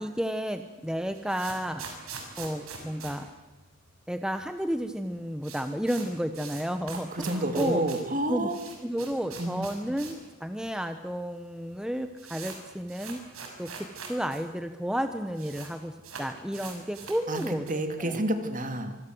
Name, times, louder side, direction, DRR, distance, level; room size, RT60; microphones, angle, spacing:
voice 1, 0.0-2.0 2.4-3.3 4.1-7.8 8.3-8.5 8.8-13.2 13.6-17.6 18.0-18.2, equal, 5° right, 8 dB, 1.1 m, -32 dB
sound 1, 1.1-4.1 4.4-4.5 4.7-4.8 5.1-10.3 10.6-10.7 11.4-11.5 11.7-14.4 14.7-14.8 15.0-15.7 16.0-17.9, right 5 dB, 90° right, 6.6 m, -43 dB
voice 2, 6.9-8.6 9.4-9.7 17.3-17.4 17.7-19.0, right 1 dB, 40° right, 7 dB, 2.8 m, -29 dB
26.5 x 25.0 x 7.9 m, 1.1 s
head